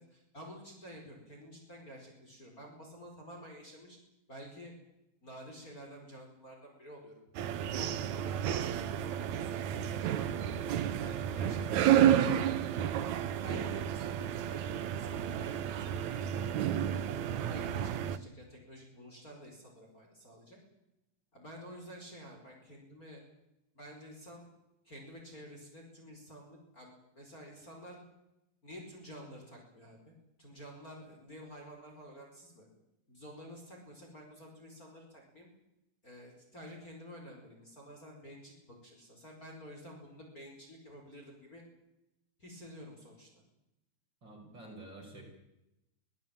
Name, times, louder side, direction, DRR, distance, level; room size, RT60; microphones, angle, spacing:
voice 1, 0.0-4.0 4.3-4.7 5.2-7.2 7.6-10.6 11.0-12.6 13.3-20.6 21.3-23.2 23.8-24.5 24.8-28.0 28.6-32.7 33.1-35.5 36.0-41.6 42.4-43.3, equal, 20° left, 0 dB, 5.1 m, -50 dB
sound 1, 7.3-18.2, right 10 dB, 65° right, 1.9 m, -31 dB
voice 2, 44.2-45.2, right 2 dB, 30° right, 2 dB, 5.8 m, -49 dB
23.5 x 18.5 x 8.9 m, 0.90 s
omnidirectional pair, 4.4 m